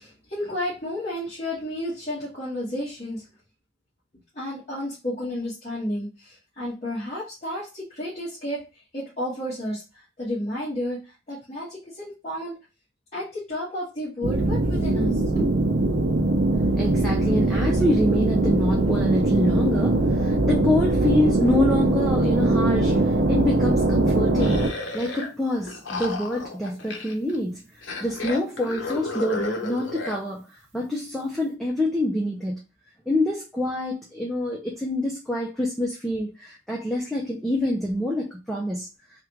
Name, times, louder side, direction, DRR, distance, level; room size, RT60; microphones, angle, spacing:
voice 1, 0.0-3.2 4.3-12.6 13.1-15.9, left 1 dB, 35° left, -10 dB, 1.6 m, -32 dB
sound 1, 14.2-24.7, right 2 dB, 55° right, 0.6 m, -21 dB
voice 2, 16.7-24.7 24.9-27.6 28.0-32.6 33.1-38.9, left 1 dB, ahead, -3 dB, 0.6 m, -26 dB
sound 2, 24.4-25.3 25.6-27.4 27.8-30.2, left 3 dB, 70° left, 0.8 m, -33 dB
3.6 x 2.5 x 4.5 m, 0.29 s
head